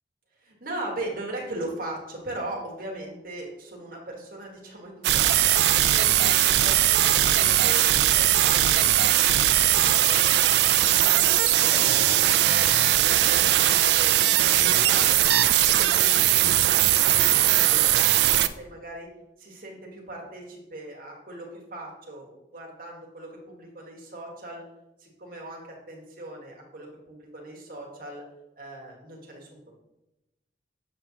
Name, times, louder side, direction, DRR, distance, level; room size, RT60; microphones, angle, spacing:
voice 1, 0.4-5.6 5.9-12.8 13.0-15.2 15.5-19.1 19.4-24.6 25.0-28.2 28.6-29.5, right 1 dB, 50° right, -2 dB, 1.5 m, -39 dB
sound 1, 5.0-18.5, right 13 dB, 70° right, 0.3 m, -20 dB
7.3 x 5.9 x 2.8 m, 0.95 s
head